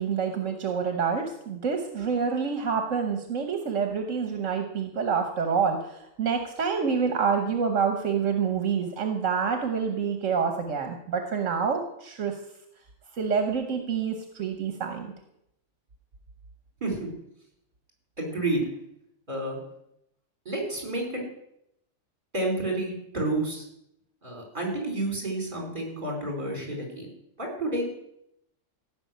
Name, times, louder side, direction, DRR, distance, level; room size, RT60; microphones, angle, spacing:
voice 1, 0.0-12.4 13.1-15.1, right 6 dB, 75° right, 5 dB, 1.5 m, -27 dB
voice 2, 18.2-18.6 19.3-19.6 20.4-21.2 22.3-23.6 24.2-27.1 27.4-27.8, right 2 dB, 40° right, 1 dB, 4.7 m, -30 dB
15.5 x 6.2 x 9.3 m, 0.79 s
omnidirectional pair, 1.3 m